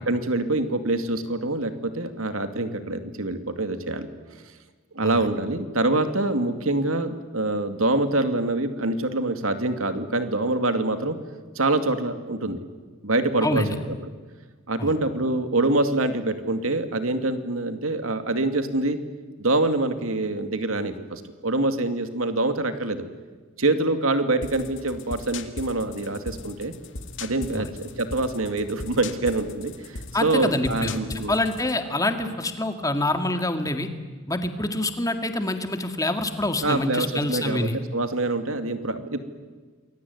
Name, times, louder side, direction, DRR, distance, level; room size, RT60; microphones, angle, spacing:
voice 1, 0.1-4.1 4.9-11.2 11.6-12.6 13.0-14.0 14.7-19.0 19.4-23.0 23.6-26.7 27.2-31.4 32.2-32.3 36.6-39.2, right 2 dB, 75° right, 8 dB, 2.5 m, -25 dB
voice 2, 13.4-13.8 14.8-14.9 27.5-27.7 30.1-33.9 34.3-37.7, left 1 dB, 15° left, 7 dB, 2.1 m, -26 dB
sound 1, 24.4-31.8, left 3 dB, 60° left, 2.2 m, -39 dB
28.0 x 22.0 x 9.6 m, 1.4 s
head